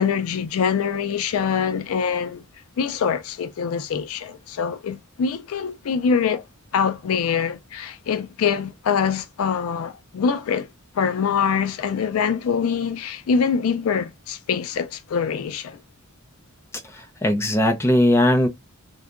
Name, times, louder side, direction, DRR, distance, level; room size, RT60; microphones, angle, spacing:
voice 1, 0.0-2.4 2.8-6.4 6.7-10.7 10.9-15.8, left 6 dB, 70° left, 0.4 m, -24 dB
voice 2, 16.9-18.5, left 1 dB, 10° left, 0.5 m, -19 dB
2.7 x 2.2 x 2.3 m
head